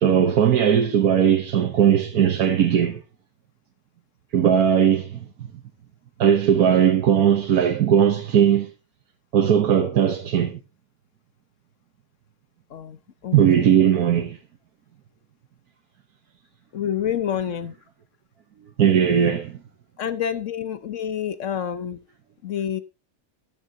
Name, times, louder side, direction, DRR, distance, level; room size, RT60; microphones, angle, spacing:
voice 1, 0.0-3.0 4.3-5.5 6.2-8.7 9.3-10.6 13.3-14.4 18.8-19.5, right 9 dB, 85° right, 1.5 m, -18 dB
voice 2, 12.7-13.9 16.7-17.7 20.0-22.0 22.4-22.8, left 9 dB, 60° left, 1.2 m, -28 dB
14.0 x 10.0 x 2.8 m
omnidirectional pair, 1.6 m